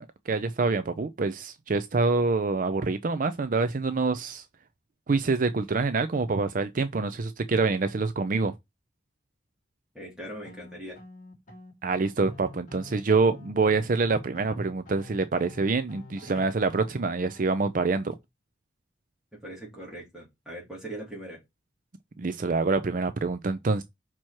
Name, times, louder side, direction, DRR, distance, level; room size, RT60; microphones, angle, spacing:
voice 1, 0.0-4.4 5.1-8.5 11.8-18.1 22.2-23.8, right 4 dB, 50° right, 0.5 m, -26 dB
voice 2, 9.9-11.0 16.2-16.4 19.4-21.4, right 1 dB, 5° right, 3.5 m, -41 dB
sound 1, 10.4-17.9, left 3 dB, 45° left, 2.4 m, -48 dB
6.0 x 4.6 x 4.5 m
head